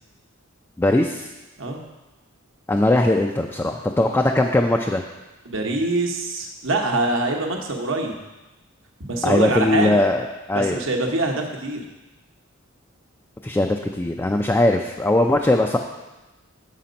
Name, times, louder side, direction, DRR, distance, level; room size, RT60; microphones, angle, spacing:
voice 1, 0.8-1.3 2.7-5.0 9.2-10.8 13.4-15.8, left 1 dB, 10° left, 2 dB, 0.3 m, -20 dB
voice 2, 5.4-8.1 9.0-10.0 10.5-11.8, right 2 dB, 70° right, 2 dB, 1.0 m, -24 dB
6.7 x 5.8 x 5.1 m, 1.1 s
head